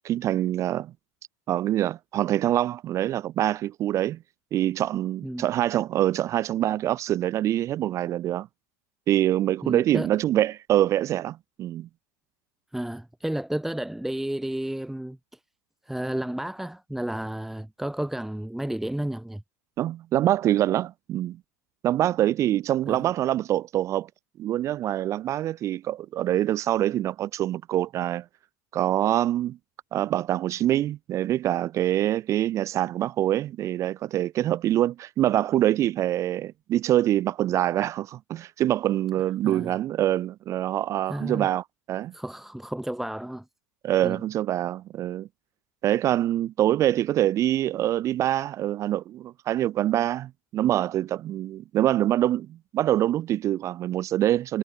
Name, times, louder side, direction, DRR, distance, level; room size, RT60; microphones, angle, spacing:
voice 1, 0.0-0.9 1.5-4.2 4.5-8.5 9.1-11.9 19.8-21.4 21.8-24.1 24.4-28.3 28.7-29.6 29.9-42.1 43.8-45.3 45.8-54.6, right 13 dB, 35° right, 0.3 m, -25 dB
voice 2, 9.6-10.1 12.7-15.2 15.9-19.4 22.9-23.1 39.4-39.7 41.1-41.5 42.1-43.4 44.0-44.2, right 1 dB, 5° right, 1.8 m, -32 dB
supercardioid pair, 115°, 9 cm